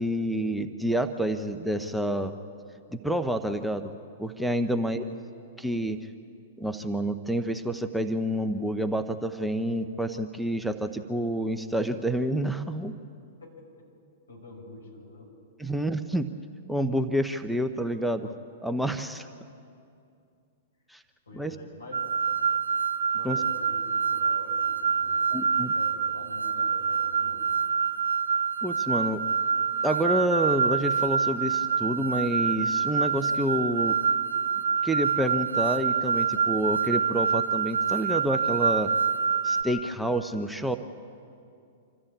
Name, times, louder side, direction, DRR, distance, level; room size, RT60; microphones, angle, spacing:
voice 1, 0.0-2.3 2.9-3.9 4.2-5.0 5.6-6.0 6.6-12.9 15.6-16.3 16.7-18.3 18.6-19.3 20.9-21.0 21.3-21.5 23.2-23.4 25.3-25.7 28.6-29.2 29.8-34.0 34.8-38.9 39.4-40.8, right 1 dB, ahead, 7 dB, 0.9 m, -28 dB
voice 2, 4.7-5.2 13.4-13.5 14.3-15.3 15.6-15.7 21.3-22.0 23.1-27.5, left 2 dB, 80° left, 0 dB, 6.3 m, -46 dB
sound 1, 21.9-39.6, right 6 dB, 85° right, 0.8 m, -26 dB
26.0 x 13.5 x 8.8 m, 2.5 s
figure-of-eight pair, 105°, 0 cm